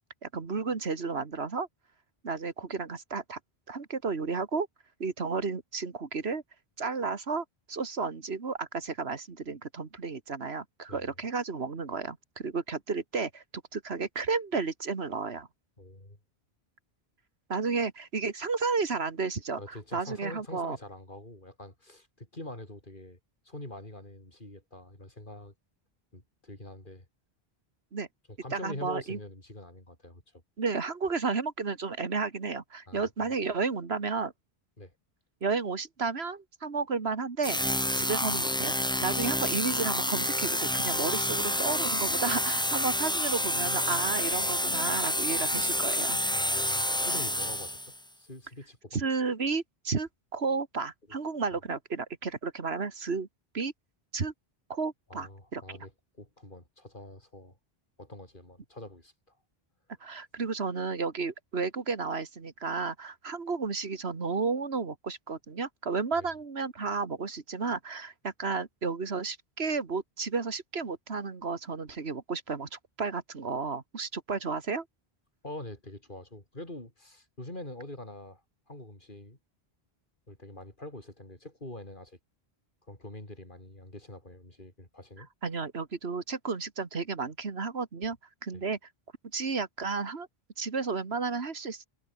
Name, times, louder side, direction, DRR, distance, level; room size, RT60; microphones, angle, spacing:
voice 1, 0.2-1.7 2.2-3.4 3.7-4.7 5.0-6.4 6.8-13.4 13.7-15.5 17.5-20.8 27.9-28.1 28.5-29.2 30.6-34.3 35.4-37.6 37.9-38.7 39.0-46.2 48.9-53.3 53.5-53.7 54.1-54.3 54.7-55.6 60.0-74.9 85.4-88.2 88.4-88.8 89.3-90.3 90.6-91.9, right 4 dB, 90° right, 2.2 m, -32 dB
voice 2, 15.8-16.2 19.6-23.2 23.4-25.5 26.1-27.1 28.3-30.4 32.9-33.3 34.8-34.9 37.9-38.1 46.3-49.0 55.1-57.6 58.0-59.1 66.2-66.3 75.4-79.4 80.3-82.2 82.9-85.3 88.5-88.6, left 1 dB, 55° left, 5.7 m, -45 dB
sound 1, 37.4-48.0, equal, 5° left, 1.3 m, -29 dB
omnidirectional pair, 1.0 m